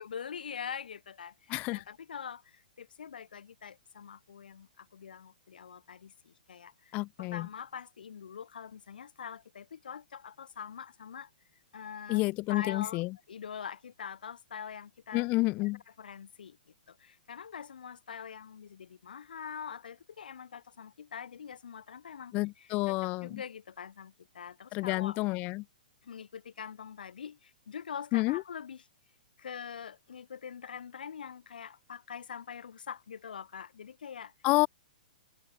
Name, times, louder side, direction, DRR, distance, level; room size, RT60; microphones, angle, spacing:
voice 1, 0.0-1.3 1.7-2.4 2.8-4.7 4.9-6.1 6.5-6.7 7.2-11.3 11.7-12.2 12.5-13.0 13.3-15.3 15.6-15.7 16.0-16.5 17.3-25.2 26.1-27.4 27.7-28.8 29.4-34.3, left 7 dB, 80° left, 1.5 m, -43 dB
voice 2, 1.5-1.8 6.9-7.5 12.1-13.1 15.1-15.8 22.3-23.4 24.7-25.6 28.1-28.4 34.4-34.7, left 23 dB, 30° left, 0.4 m, -29 dB
hypercardioid pair, 140°, 5 cm